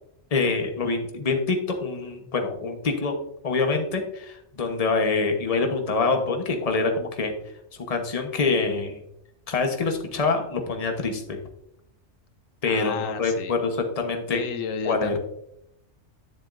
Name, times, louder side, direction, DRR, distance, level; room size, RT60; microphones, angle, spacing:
voice 1, 0.3-3.1 3.4-7.3 7.9-9.0 9.5-11.4 12.6-14.4 14.8-15.2, left 4 dB, 30° left, 4 dB, 1.0 m, -25 dB
voice 2, 12.6-13.5 14.3-15.2, left 6 dB, 85° left, 8 dB, 1.0 m, -32 dB
10.0 x 7.2 x 2.5 m, 0.79 s
omnidirectional pair, 1.3 m